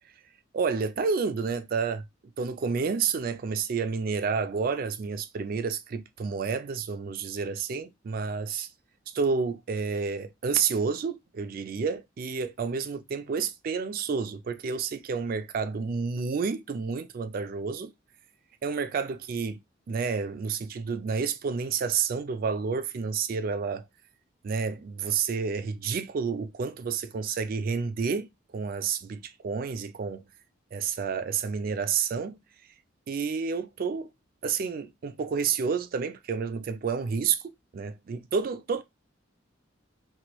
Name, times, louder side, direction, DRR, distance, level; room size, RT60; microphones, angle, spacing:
voice 1, 0.5-2.0 2.4-8.7 9.1-17.9 18.6-19.6 19.9-23.9 24.4-28.3 28.5-30.2 30.7-32.4 33.1-34.1 34.4-38.8, right 5 dB, 50° right, 0.3 m, -30 dB
2.9 x 2.5 x 2.9 m
head